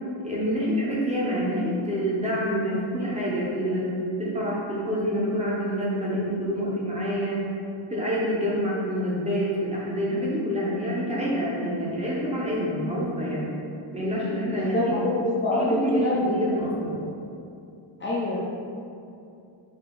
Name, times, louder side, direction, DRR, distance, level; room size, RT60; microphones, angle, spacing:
voice 1, 0.2-3.9 4.2-7.4 7.9-13.5 13.9-14.9 15.5-17.0, equal, 15° right, -6 dB, 0.8 m, -27 dB
voice 2, 14.5-16.6 18.0-18.4, left 1 dB, 25° left, -8 dB, 0.4 m, -25 dB
4.8 x 2.8 x 3.7 m, 2.6 s
cardioid pair, 150°, 49 cm